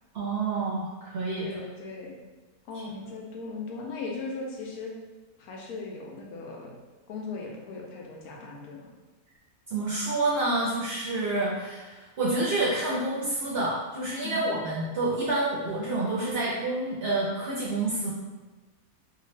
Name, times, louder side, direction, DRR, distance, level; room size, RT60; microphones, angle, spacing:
voice 1, 0.1-1.5 9.7-18.1, right 2 dB, 65° right, -6 dB, 0.6 m, -28 dB
voice 2, 1.4-2.2 2.7-4.9 5.4-6.8 7.1-8.9 14.2-14.5, left 3 dB, 85° left, -1 dB, 1.1 m, -38 dB
2.7 x 2.5 x 3.1 m, 1.2 s
omnidirectional pair, 1.5 m